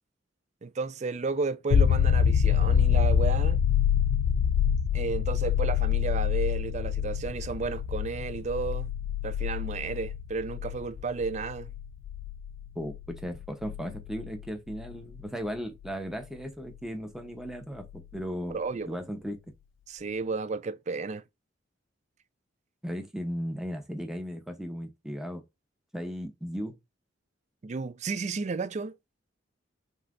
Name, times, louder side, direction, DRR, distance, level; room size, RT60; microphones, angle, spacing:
voice 1, 0.6-3.6 4.9-8.9 9.2-11.7 18.5-19.0 19.9-21.2 27.6-29.0, right 4 dB, 35° right, 0.4 m, -32 dB
sound 1, 1.7-15.2 17.9-18.0, left 8 dB, 80° left, 0.3 m, -26 dB
voice 2, 12.7-18.6 18.9-19.4 22.8-25.4 25.9-26.8, equal, 5° right, 0.8 m, -36 dB
5.5 x 2.8 x 2.5 m
head